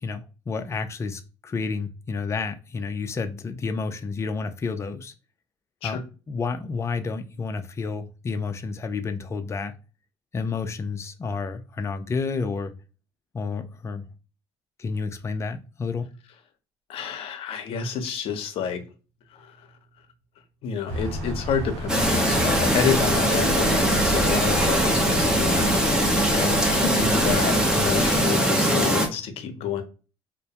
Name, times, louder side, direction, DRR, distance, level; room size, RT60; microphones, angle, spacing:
voice 1, 0.0-5.1 5.8-6.0 6.3-9.7 10.3-12.7 13.3-14.0 14.8-16.1, left 4 dB, 25° left, 0.4 m, -30 dB
voice 2, 16.9-18.8 19.3-19.7 20.6-29.8, left 7 dB, 65° left, 0.6 m, -29 dB
sound 1, 20.9-28.2, equal, 85° right, 0.7 m, -32 dB
Chirp tweet, 21.9-29.1, right 1 dB, 5° right, 0.7 m, -21 dB
2.2 x 2.1 x 2.8 m
cardioid pair, 95°, 10 cm